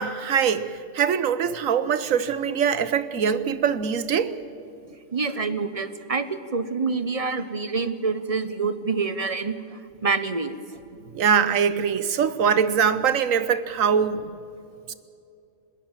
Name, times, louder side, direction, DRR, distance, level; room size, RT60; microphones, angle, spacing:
voice 1, 0.0-4.3 11.1-14.3 14.9-15.0, right 7 dB, 80° right, 1.3 m, -23 dB
voice 2, 5.1-10.6, right 4 dB, 30° right, 0.9 m, -27 dB
21.0 x 18.5 x 7.4 m
omnidirectional pair, 1.4 m